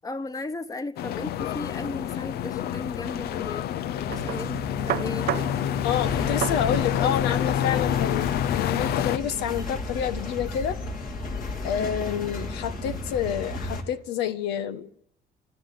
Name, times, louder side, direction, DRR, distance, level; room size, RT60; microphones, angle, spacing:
voice 1, 0.0-3.7 4.0-5.3 6.1-7.5, left 2 dB, 20° left, 1.4 m, -36 dB
sound 1, 1.0-9.2, left 11 dB, 70° left, 0.8 m, -28 dB
sound 2, 4.0-10.9, right 15 dB, 70° right, 0.7 m, -36 dB
voice 2, 5.8-10.8 11.6-15.0, left 9 dB, 90° left, 1.4 m, -28 dB
sound 3, 5.8-13.8, left 2 dB, 55° left, 3.4 m, -34 dB
27.0 x 13.5 x 7.9 m
cardioid pair, 110°, 17 cm